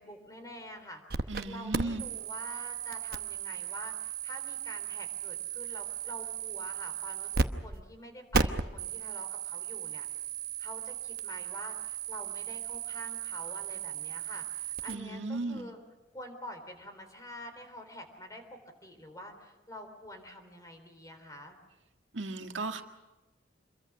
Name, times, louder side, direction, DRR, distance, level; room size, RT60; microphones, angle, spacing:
voice 1, 0.0-10.0 10.6-15.8 16.1-21.6, left 1 dB, 20° left, 6 dB, 3.7 m, -47 dB
sound 1, 1.1-1.4 1.7-7.5 7.7-7.8 8.3-14.9, right 5 dB, 55° right, 1.0 m, -35 dB
voice 2, 1.3-2.0 14.9-15.7 22.1-22.8, right 3 dB, 80° right, 4 dB, 1.7 m, -36 dB
27.0 x 22.5 x 6.1 m, 1.1 s
head